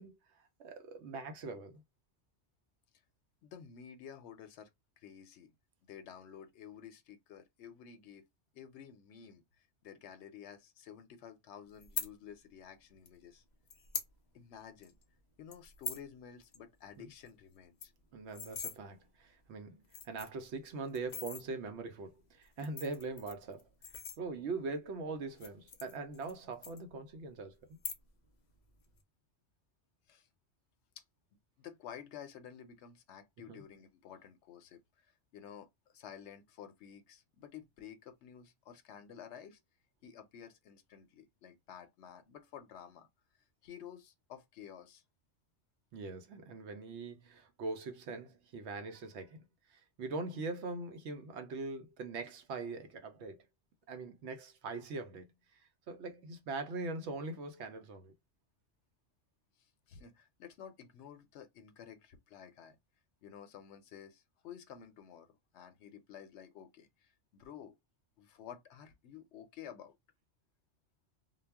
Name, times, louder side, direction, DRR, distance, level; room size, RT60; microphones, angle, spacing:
voice 1, 0.0-1.8 17.0-17.1 18.1-23.7 24.2-27.8 33.5-33.6 45.9-53.4 53.9-55.3 55.9-58.1, right 3 dB, 75° right, 0.9 m, -42 dB
voice 2, 3.4-4.7 5.0-5.5 5.9-8.2 8.5-13.4 14.3-15.0 15.4-17.9 30.1-30.3 31.6-35.7 35.9-39.6 40.0-43.1 43.6-45.0 59.6-62.8 63.2-65.3 65.5-67.7 68.2-70.0, left 8 dB, 75° left, 0.8 m, -52 dB
sound 1, 11.8-12.1 13.1-13.2 13.7-14.1 14.5-14.6 14.8-15.0 15.5-16.1 16.4-16.6 16.9-17.0 17.3-17.4 17.6-18.8 19.4-19.5 19.8-20.4 20.9-21.4 22.4-24.6 25.3-26.4 26.6-27.3 27.7-28.3 28.6-29.0, left 7 dB, 55° left, 0.5 m, -42 dB
2.3 x 2.0 x 3.3 m
omnidirectional pair, 1.2 m